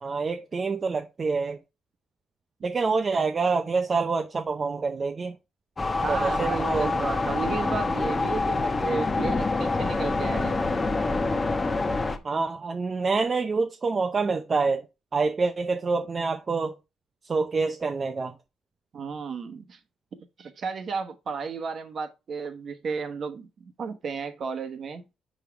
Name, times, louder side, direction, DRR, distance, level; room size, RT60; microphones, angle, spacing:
voice 1, 0.0-1.6 2.6-5.3 6.1-7.0 12.2-14.8 15.1-16.7 17.3-18.3, right 4 dB, 35° right, 0.6 m, -26 dB
sound 1, 5.8-12.2, left 3 dB, 25° left, 0.9 m, -26 dB
voice 2, 6.0-10.6 18.9-19.8 20.1-23.5 23.8-25.0, right 5 dB, 50° right, 1.1 m, -33 dB
5.2 x 4.7 x 4.8 m
cardioid pair, 95°, 0 cm